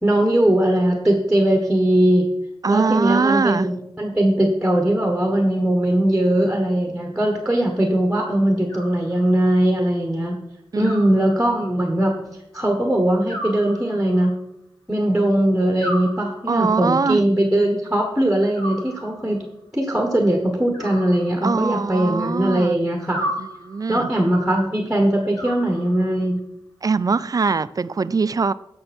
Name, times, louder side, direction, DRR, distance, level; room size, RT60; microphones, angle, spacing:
voice 1, 0.0-2.3 2.7-10.4 10.7-12.1 12.5-14.3 14.9-19.4 19.7-23.2 23.9-26.4, right 1 dB, 5° right, 2 dB, 1.5 m, -20 dB
voice 2, 2.6-3.7 10.7-11.0 16.5-17.2 21.4-22.8 23.2-23.3 23.6-24.1 26.8-28.5, right 4 dB, 40° right, 16 dB, 0.4 m, -21 dB
Animal, 8.7-9.6 10.8-11.8 13.3-14.4 15.8-16.8 18.5-19.4 20.7-21.8 23.1-24.0 25.3-26.3, equal, 40° left, 2.9 m, -34 dB
15.5 x 5.6 x 4.4 m, 0.83 s
wide cardioid pair, 85°, 9 cm